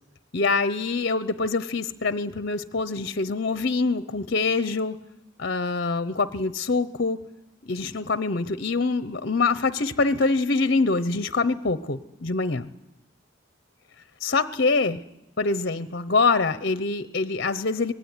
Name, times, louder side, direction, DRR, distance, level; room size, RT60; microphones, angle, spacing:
voice 1, 0.3-5.0 5.4-7.2 7.6-12.7 14.2-15.0 15.4-17.9, left 3 dB, 55° left, 12 dB, 0.9 m, -25 dB
25.0 x 20.0 x 9.8 m, 0.88 s
head